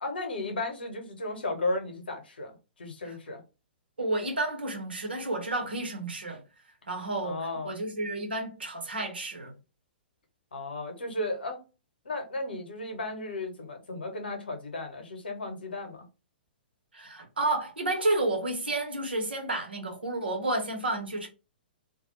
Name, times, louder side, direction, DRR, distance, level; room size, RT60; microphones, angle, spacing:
voice 1, 0.0-3.4 7.2-7.8 10.5-11.6 12.0-16.0, left 2 dB, 70° left, 1.0 m, -34 dB
voice 2, 4.0-6.4 6.9-7.4 7.6-9.5 16.9-21.3, right 2 dB, 80° right, 1.1 m, -31 dB
2.4 x 2.3 x 3.1 m
figure-of-eight pair, 115°, 6 cm